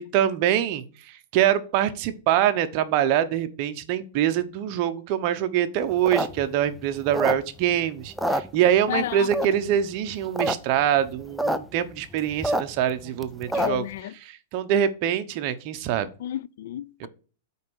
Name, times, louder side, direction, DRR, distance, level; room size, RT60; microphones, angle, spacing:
voice 1, 0.0-13.8 14.2-16.1 17.0-17.1, right 10 dB, 40° right, 0.8 m, -24 dB
sound 1, 5.9-7.7 8.1-9.0 9.3-9.8 10.2-10.5 10.8-10.9 11.1-11.6 11.9-13.9, right 1 dB, ahead, 0.4 m, -27 dB
voice 2, 8.9-9.6 13.5-14.1 16.2-17.1, left 11 dB, 65° left, 0.3 m, -32 dB
5.7 x 4.7 x 6.2 m
supercardioid pair, 155°, 0 cm